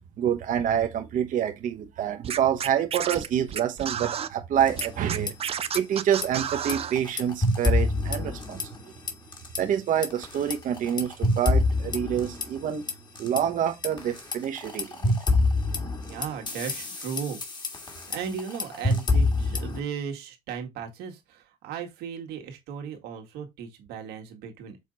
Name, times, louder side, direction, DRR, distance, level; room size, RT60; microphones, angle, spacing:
voice 1, 0.2-5.3 5.7-8.6 9.6-12.8 13.2-15.1, right 9 dB, 55° right, 1.1 m, -27 dB
Scratching (performance technique), 2.2-4.3 4.8-6.9, right 8 dB, 40° right, 0.7 m, -31 dB
sound 1, 4.6-5.3 5.6-5.8 6.2-8.8 9.1-9.6 10.0-13.4 13.8-19.8, left 2 dB, 25° left, 1.8 m, -27 dB
voice 2, 16.0-17.4 18.1-24.8, right 7 dB, 85° right, 2.0 m, -36 dB
6.6 x 3.7 x 4.0 m
cardioid pair, 115°, 16 cm